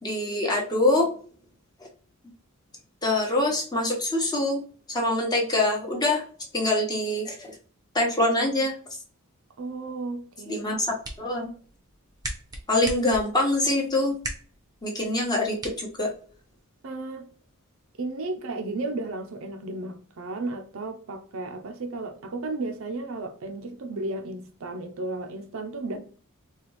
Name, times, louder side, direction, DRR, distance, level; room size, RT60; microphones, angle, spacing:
voice 1, 0.0-1.1 3.0-4.6 4.9-6.2 6.5-7.5 7.9-8.7 10.5-10.9 11.2-11.5 12.7-14.2 14.8-16.1, left 2 dB, 20° left, 1.0 m, -24 dB
voice 2, 9.6-10.5 16.8-17.3 18.0-26.0, right 2 dB, 65° right, 0.6 m, -34 dB
sound 1, 10.7-16.6, right 1 dB, 15° right, 0.8 m, -41 dB
4.1 x 2.3 x 3.1 m
head